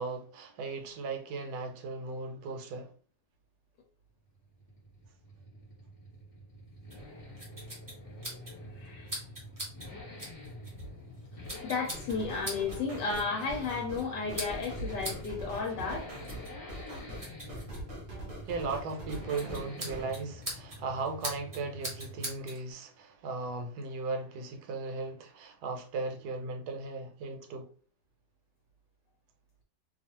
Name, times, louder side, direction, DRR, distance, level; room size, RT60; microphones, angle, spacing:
voice 1, 0.0-2.9 18.4-27.7, right 3 dB, 70° right, 1.1 m, -37 dB
Accelerating revving vroom, 4.3-22.4 22.7-22.8, left 1 dB, 35° left, 1.3 m, -47 dB
sound 1, 6.9-22.6, right 1 dB, 25° right, 0.4 m, -45 dB
voice 2, 8.8-9.2 11.6-16.1, left 4 dB, 80° left, 1.2 m, -33 dB
sound 2, 11.9-20.1, right 1 dB, 40° right, 0.8 m, -43 dB
2.9 x 2.4 x 2.8 m
omnidirectional pair, 1.9 m